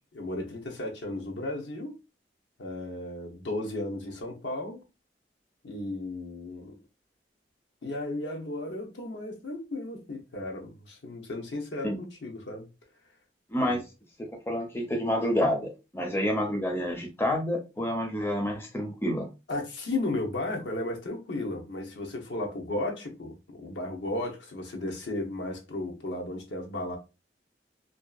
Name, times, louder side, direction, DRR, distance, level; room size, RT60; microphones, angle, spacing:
voice 1, 0.1-2.0 2.6-4.9 5.6-6.8 7.8-12.7 13.6-13.8 19.5-27.0, left 2 dB, 90° left, 0.7 m, -34 dB
voice 2, 13.5-13.8 14.2-19.3, equal, 15° left, 0.5 m, -28 dB
2.6 x 2.3 x 2.2 m
head